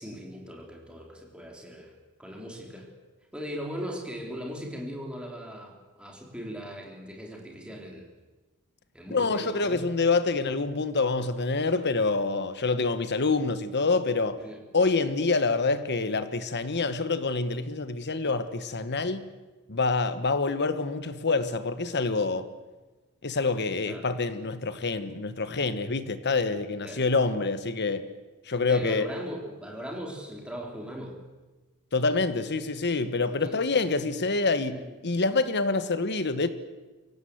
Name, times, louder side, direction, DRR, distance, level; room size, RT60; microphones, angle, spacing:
voice 1, 0.0-1.9 2.2-2.9 3.3-8.1 8.9-9.9 14.4-14.6 23.9-24.0 26.8-27.0 28.5-31.2 33.4-33.8 34.7-34.9, equal, 5° right, 3.7 m, -39 dB
voice 2, 9.1-14.4 14.7-19.3 19.7-22.5 23.2-28.0 28.4-29.1 31.9-36.5, left 3 dB, 50° left, 1.2 m, -26 dB
23.5 x 17.5 x 7.9 m
head